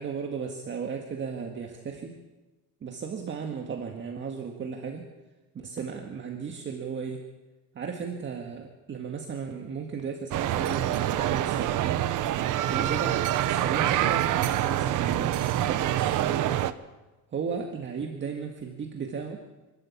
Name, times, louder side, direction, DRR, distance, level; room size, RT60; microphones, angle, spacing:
voice 1, 0.0-2.2 2.8-5.1 5.5-7.3 7.7-12.2 12.7-16.5 17.3-19.5, right 6 dB, 30° right, 3 dB, 1.9 m, -35 dB
sound 1, 10.3-16.7, right 12 dB, 55° right, 1.1 m, -26 dB
29.0 x 12.5 x 8.5 m, 1.2 s
cardioid pair, 160°, 36 cm